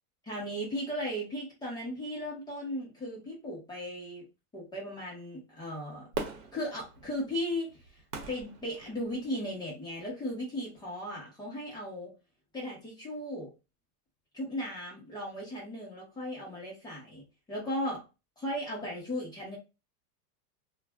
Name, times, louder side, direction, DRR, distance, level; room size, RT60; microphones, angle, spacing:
voice 1, 0.3-4.2 4.5-6.1 6.5-7.8 8.3-12.1 12.5-13.5 14.3-17.2 17.5-18.0 18.4-19.6, equal, 10° left, -4 dB, 0.7 m, -36 dB
Fireworks, 6.1-9.5 10.0-10.1, right 4 dB, 90° right, 1.0 m, -41 dB
2.4 x 2.2 x 3.2 m, 0.28 s
supercardioid pair, 150°, 47 cm